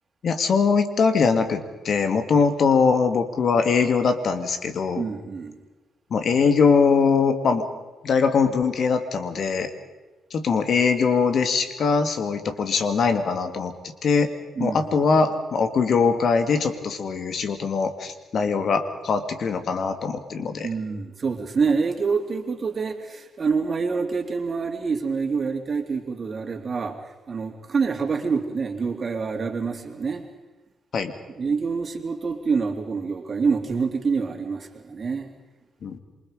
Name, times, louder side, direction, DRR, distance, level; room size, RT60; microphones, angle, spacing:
voice 1, 0.2-5.0 6.1-7.7 8.0-9.7 10.3-13.7 14.0-14.3 14.6-20.7 30.9-31.1 35.8-36.0, left 5 dB, 60° left, 7 dB, 2.2 m, -22 dB
voice 2, 5.0-5.5 14.6-15.0 20.6-27.0 27.3-30.2 31.3-35.3, right 5 dB, 50° right, 5 dB, 2.8 m, -26 dB
27.5 x 24.0 x 5.1 m, 1.1 s
hypercardioid pair, 45°, 0 cm